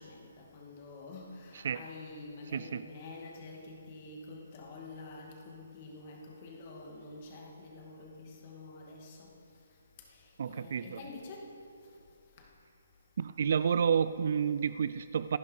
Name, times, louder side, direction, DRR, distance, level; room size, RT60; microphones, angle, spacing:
voice 1, 0.0-9.3 10.5-11.5, left 3 dB, 25° left, 0 dB, 2.3 m, -47 dB
voice 2, 10.4-11.0 13.2-15.4, right 7 dB, 45° right, 14 dB, 0.3 m, -30 dB
26.5 x 10.5 x 4.7 m, 2.5 s
hypercardioid pair, 175°, 0 cm